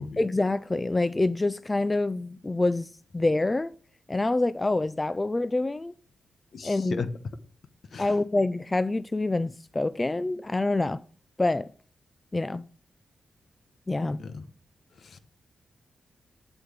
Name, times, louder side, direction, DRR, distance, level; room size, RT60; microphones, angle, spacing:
voice 1, 0.2-3.7 4.1-5.9 6.6-7.0 8.0-11.0 11.4-11.7 12.3-12.6 13.9-14.2, left 2 dB, 30° left, 0.4 m, -26 dB
voice 2, 6.5-7.1 7.9-8.1 14.2-14.4 15.0-15.2, left 5 dB, 65° left, 0.9 m, -36 dB
8.0 x 7.9 x 3.3 m
supercardioid pair, 45°, 0 cm